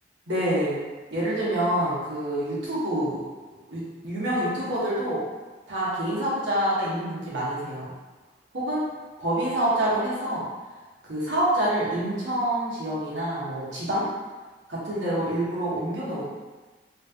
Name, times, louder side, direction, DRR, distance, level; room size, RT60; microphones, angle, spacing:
voice 1, 0.3-0.8 1.1-3.2 3.7-5.2 5.7-7.9 8.5-8.8 9.2-10.4 11.1-14.1 14.7-16.2, right 1 dB, 80° right, -8 dB, 1.1 m, -27 dB
3.1 x 2.5 x 2.8 m, 1.3 s
head